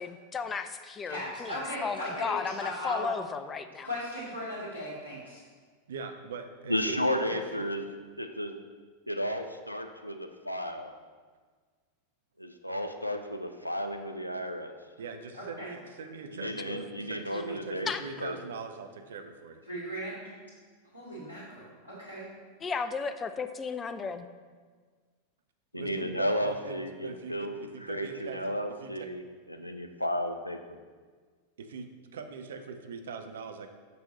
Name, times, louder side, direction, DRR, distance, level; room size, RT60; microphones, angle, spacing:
voice 1, 0.0-3.9 17.9-18.0 22.6-24.3, left 5 dB, 20° left, 9 dB, 0.4 m, -34 dB
voice 2, 1.0-3.1 3.8-5.4 15.3-15.7 19.7-20.3 20.9-22.3, equal, 85° right, -11 dB, 1.7 m, -37 dB
voice 3, 5.9-7.7 15.0-19.6 25.7-29.1 31.6-33.7, right 5 dB, 65° right, 7 dB, 0.5 m, -41 dB
voice 4, 6.7-7.8 8.2-8.5 9.1-10.9 12.4-14.7 16.3-17.9 18.2-18.4 25.7-27.5 27.9-29.2 29.5-30.6, equal, 90° left, 6 dB, 0.5 m, -33 dB
6.1 x 5.5 x 4.0 m, 1.5 s
figure-of-eight pair, 90°, 0 cm